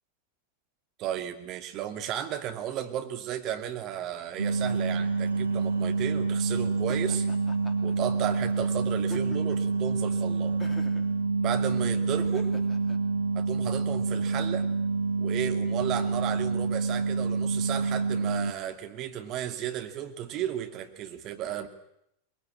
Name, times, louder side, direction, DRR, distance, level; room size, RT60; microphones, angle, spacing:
voice 1, 1.0-7.3 7.8-10.6 11.4-12.5 13.3-14.7 15.2-21.7, right 11 dB, 35° right, 5 dB, 2.6 m, -34 dB
sound 1, 4.4-18.5, right 4 dB, 75° right, 1.0 m, -27 dB
Laughter, 6.9-7.9 9.0-9.7 10.6-11.1 12.2-13.0, left 3 dB, 15° left, 2.8 m, -46 dB
22.5 x 22.0 x 8.9 m, 0.79 s
figure-of-eight pair, 90°, 0 cm